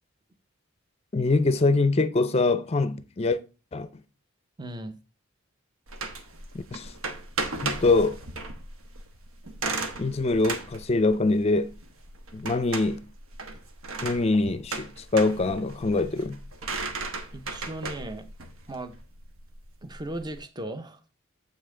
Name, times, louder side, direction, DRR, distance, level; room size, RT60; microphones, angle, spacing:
voice 1, 1.1-3.4 3.7-3.9 6.5-6.9 7.6-8.2 10.0-11.7 12.3-13.0 14.0-16.4, left 3 dB, 30° left, 0.5 m, -24 dB
voice 2, 4.6-5.0 17.3-18.3 18.7-19.0 19.8-21.0, right 1 dB, 20° right, 0.6 m, -37 dB
sound 1, 5.9-20.4, right 3 dB, 90° right, 1.1 m, -36 dB
7.6 x 5.4 x 3.7 m
head